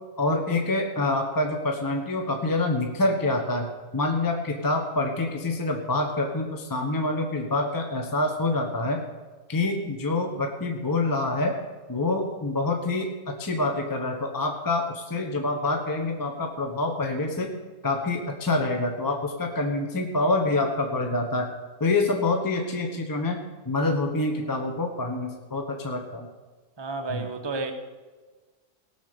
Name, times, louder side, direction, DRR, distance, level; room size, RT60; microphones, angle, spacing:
voice 1, 0.2-3.7 3.9-9.0 9.5-11.6 11.9-17.6 17.8-21.5 21.8-26.3 27.1-27.3, left 2 dB, 15° left, 1.1 m, -26 dB
voice 2, 26.8-27.7, right 3 dB, 20° right, 1.0 m, -31 dB
18.0 x 6.2 x 6.9 m
omnidirectional pair, 1.6 m